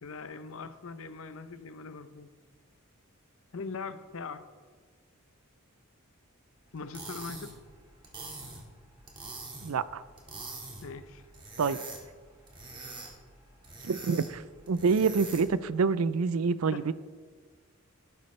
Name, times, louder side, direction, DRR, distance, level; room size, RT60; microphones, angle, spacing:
voice 1, 0.0-2.3 3.5-4.5 6.7-7.5 10.8-11.2 16.7-16.9, left 4 dB, 70° left, 11 dB, 0.7 m, -41 dB
sound 1, 6.7-15.6, right 3 dB, 25° right, 1.9 m, -45 dB
voice 2, 9.6-10.0 11.6-11.8 13.9-14.4 14.7-16.9, right 5 dB, 75° right, 16 dB, 0.4 m, -27 dB
12.0 x 10.5 x 3.3 m, 1.5 s
head